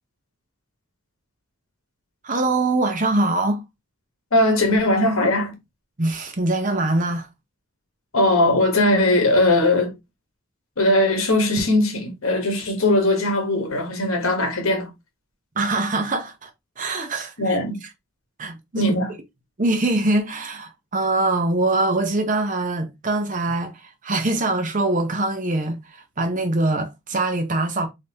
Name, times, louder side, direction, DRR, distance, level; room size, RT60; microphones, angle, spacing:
voice 1, 2.2-3.6 6.0-7.3 15.6-16.5 16.8-17.6 18.4-18.9 19.6-27.9, right 2 dB, 40° right, 0.9 m, -23 dB
voice 2, 4.3-5.6 8.1-9.9 10.8-14.9 17.4-17.8 18.8-19.1, left 1 dB, 85° left, 1.3 m, -19 dB
3.8 x 3.5 x 2.8 m
head